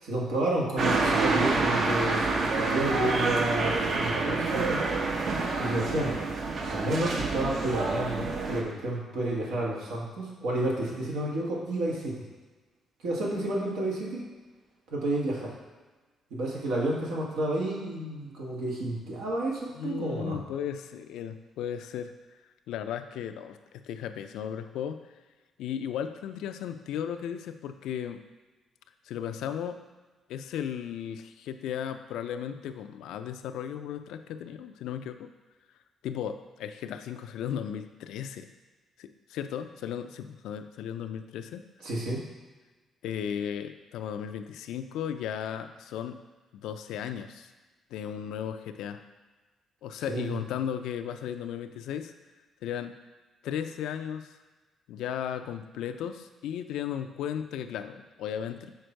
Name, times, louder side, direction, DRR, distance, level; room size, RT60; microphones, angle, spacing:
voice 1, 0.0-4.8 5.6-6.2 6.7-12.2 13.0-14.2 14.9-15.5 16.3-20.4 41.8-42.2 50.1-50.4, right 1 dB, 90° right, -4 dB, 1.7 m, -30 dB
sound 1, 0.8-8.6, right 3 dB, 60° right, 0.9 m, -27 dB
voice 2, 19.7-22.1 22.7-25.0 25.6-28.2 29.1-29.8 30.3-35.3 36.0-38.5 39.0-41.6 43.0-46.2 46.5-47.5 47.9-49.0 49.8-52.1 52.6-52.9 53.4-54.3 54.9-58.7, left 9 dB, 85° left, 8 dB, 0.4 m, -35 dB
6.6 x 4.5 x 4.5 m, 1.3 s
cardioid pair, 90°, 0 cm